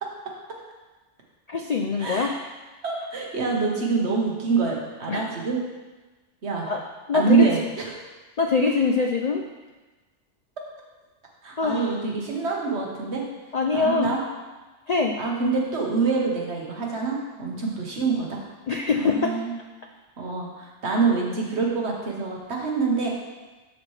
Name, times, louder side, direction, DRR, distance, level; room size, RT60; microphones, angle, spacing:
voice 1, 1.5-2.3 5.1-5.2 6.7-6.8 7.1-7.5 8.4-9.4 11.6-12.0 13.5-14.1 14.9-15.1 18.7-19.3, left 4 dB, 60° left, 3 dB, 0.4 m, -23 dB
voice 2, 2.0-2.3 2.8-5.6 6.4-6.7 7.1-7.8 11.4-13.3 13.7-14.2 15.2-18.4 18.9-19.5 20.2-23.1, right 4 dB, 60° right, -2 dB, 1.5 m, -25 dB
12.0 x 4.3 x 3.2 m, 1.2 s
omnidirectional pair, 1.3 m